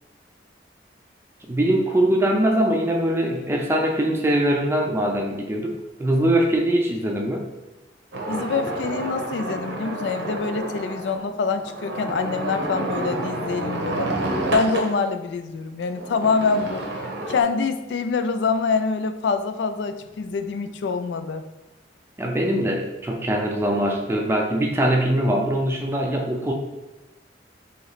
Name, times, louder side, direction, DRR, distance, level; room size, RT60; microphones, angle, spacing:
voice 1, 1.5-5.7 6.0-7.4 22.2-26.5, right 1 dB, 15° right, 1 dB, 0.4 m, -22 dB
sound 1, 8.1-14.9 15.8-17.4, right 2 dB, 80° right, 0.8 m, -29 dB
voice 2, 8.3-14.1 14.5-16.8 17.3-21.4, left 4 dB, 80° left, 9 dB, 0.3 m, -25 dB
3.1 x 3.0 x 3.9 m, 1.1 s
head